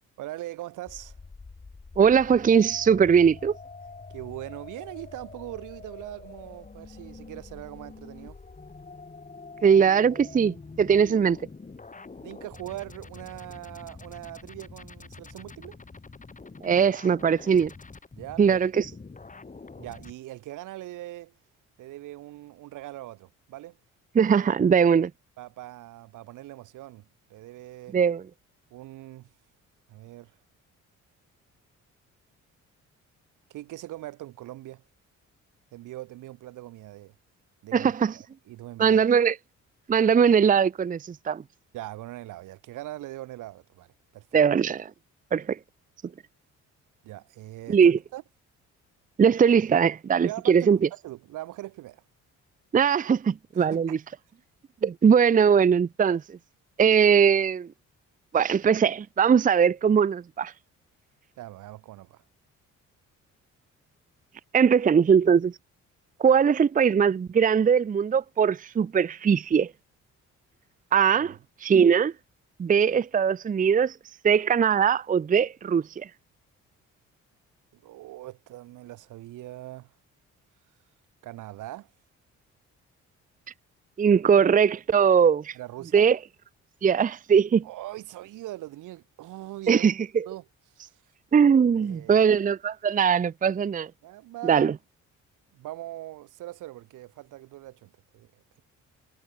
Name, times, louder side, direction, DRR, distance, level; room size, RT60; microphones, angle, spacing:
voice 1, 0.2-1.2 4.1-8.4 12.2-15.8 18.2-18.7 19.8-21.3 21.8-23.8 25.4-28.0 28.7-29.3 29.9-30.3 33.5-34.8 35.7-37.1 37.6-39.0 41.7-43.9 44.1-44.3 47.0-48.2 50.3-52.0 53.5-54.0 61.4-62.2 71.3-71.4 77.7-79.9 81.2-81.9 85.5-86.1 87.6-89.9 90.3-90.4 90.8-91.0 91.7-92.2 94.0-94.7 95.5-98.6, right 16 dB, 90° right, 3.4 m, -41 dB
sound 1, 0.9-20.1, left 4 dB, 25° left, 6.6 m, -46 dB
voice 2, 2.0-3.6 9.6-11.4 16.6-17.7 18.4-18.9 24.2-25.1 27.9-28.2 37.7-38.1 38.8-39.3 39.9-41.4 44.3-44.9 45.3-45.6 47.7-48.0 49.2-50.8 52.7-53.9 54.8-56.4 56.8-57.7 58.3-60.5 64.5-65.5 66.2-69.7 70.9-71.4 71.6-72.1 72.6-73.9 74.2-76.1 84.0-85.5 85.9-86.2 86.8-87.6 89.7-89.9 91.3-93.9 94.4-94.7, right 7 dB, 25° right, 0.6 m, -20 dB
cardioid pair, 90°, 30 cm